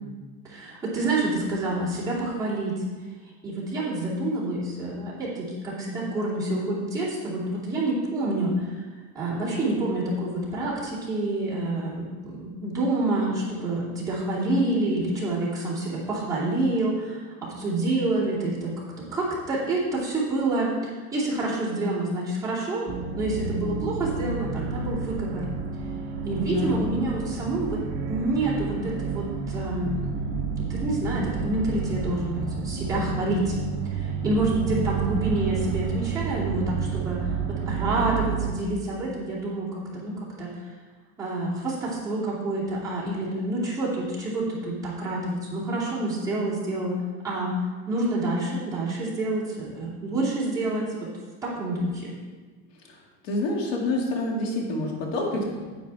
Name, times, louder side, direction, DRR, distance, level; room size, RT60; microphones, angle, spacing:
voice 1, 0.4-2.8 3.4-8.8 9.1-22.9 23.2-25.5 26.2-30.1 30.5-33.5 33.8-40.6 41.2-47.0 47.2-47.6 47.9-51.1 51.4-52.1, right 2 dB, 10° right, -9 dB, 2.6 m, -28 dB
sound 1, 22.9-38.5, right 5 dB, 30° right, 0.8 m, -30 dB
voice 2, 26.5-26.8 52.9-53.0 53.2-55.6, left 2 dB, 80° left, -1 dB, 2.2 m, -27 dB
9.7 x 9.1 x 3.5 m, 1.4 s
cardioid pair, 165°, 38 cm